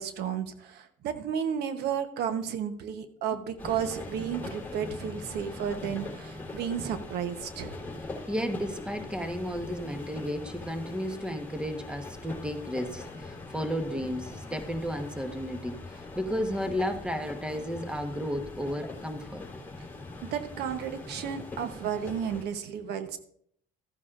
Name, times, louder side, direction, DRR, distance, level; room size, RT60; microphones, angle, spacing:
voice 1, 0.0-7.8 20.2-23.2, right 8 dB, 75° right, 9 dB, 1.0 m, -33 dB
sound 1, 3.6-22.4, left 2 dB, 10° left, 3.4 m, -42 dB
voice 2, 8.3-19.5, equal, 5° right, 6 dB, 1.2 m, -33 dB
14.0 x 9.5 x 2.5 m, 0.65 s
cardioid pair, 110°, 17 cm